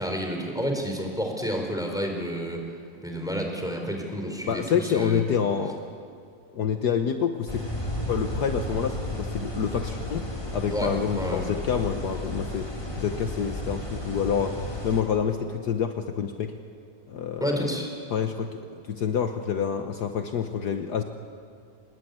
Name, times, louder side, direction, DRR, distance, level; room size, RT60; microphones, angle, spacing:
voice 1, 0.0-2.6 3.0-5.2 10.7-11.4 17.4-17.9, equal, ahead, 2 dB, 4.1 m, -30 dB
voice 2, 4.5-5.8 6.5-7.6 8.1-12.7 13.0-14.5 14.8-16.5 17.1-17.8 18.1-18.6 18.9-21.0, left 7 dB, 65° left, 6 dB, 1.5 m, -27 dB
sound 1, 7.5-15.0, left 1 dB, 15° left, 3.2 m, -33 dB
25.0 x 20.5 x 9.5 m, 2.3 s
omnidirectional pair, 2.0 m